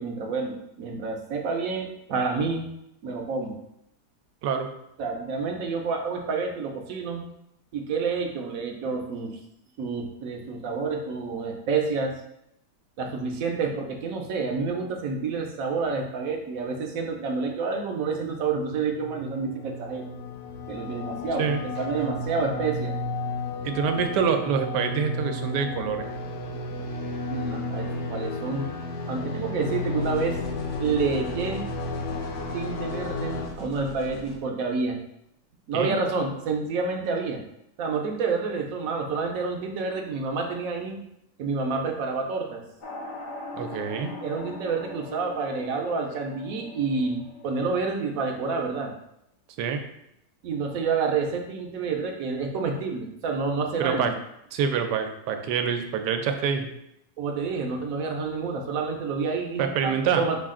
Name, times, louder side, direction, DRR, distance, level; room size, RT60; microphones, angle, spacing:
voice 1, 0.0-2.7 3.0-3.6 5.0-7.2 7.7-9.4 9.8-12.1 13.0-20.1 20.7-22.9 27.3-28.7 29.1-30.4 30.8-31.6 32.5-35.0 35.7-37.4 37.8-41.0 41.4-42.6 44.2-48.9 50.4-54.1 57.2-60.4, right 4 dB, 65° right, 2 dB, 1.0 m, -29 dB
sound 1, 18.5-33.5, left 2 dB, 90° left, 1.2 m, -33 dB
voice 2, 23.6-26.1 35.7-36.0 43.6-44.2 49.6-49.8 53.8-54.1 54.5-56.7 59.6-60.2, right 7 dB, 85° right, 6 dB, 1.2 m, -26 dB
sound 2, 30.0-34.3, left 1 dB, 65° left, 1.5 m, -43 dB
sound 3, 42.8-48.0, left 3 dB, 45° left, 0.6 m, -41 dB
5.7 x 2.4 x 3.6 m, 0.79 s
omnidirectional pair, 1.8 m